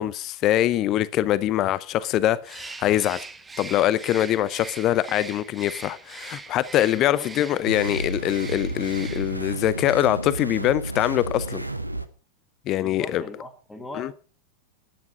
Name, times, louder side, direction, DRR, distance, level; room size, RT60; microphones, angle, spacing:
voice 1, 0.0-3.2 3.6-11.6 12.7-13.2 14.0-14.1, left 13 dB, 35° left, 0.6 m, -23 dB
Bird, 2.4-9.5, right 3 dB, 15° right, 1.0 m, -41 dB
voice 2, 6.9-7.3 12.8-14.1, left 2 dB, 5° left, 2.0 m, -39 dB
sound 1, 7.7-12.1, right 2 dB, 85° right, 0.9 m, -31 dB
12.0 x 9.7 x 5.5 m
figure-of-eight pair, 90°, 0 cm